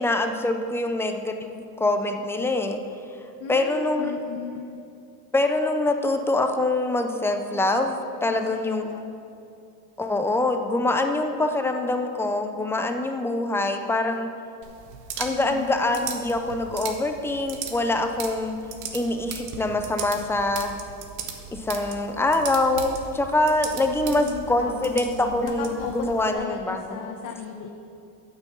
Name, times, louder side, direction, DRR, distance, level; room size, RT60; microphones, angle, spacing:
voice 1, 0.0-2.8 3.5-4.2 5.3-9.0 10.0-14.3 15.2-18.6 18.9-20.7 21.5-27.2, left 2 dB, 5° left, 5 dB, 0.3 m, -24 dB
voice 2, 3.4-4.8 8.3-9.0 15.3-15.8 23.9-24.9 25.4-26.1 26.3-27.7, left 6 dB, 45° left, 2 dB, 0.8 m, -36 dB
sound 1, 14.6-26.4, right 6 dB, 80° right, 1.4 m, -38 dB
9.1 x 6.1 x 6.8 m, 2.6 s
supercardioid pair, 125°, 46 cm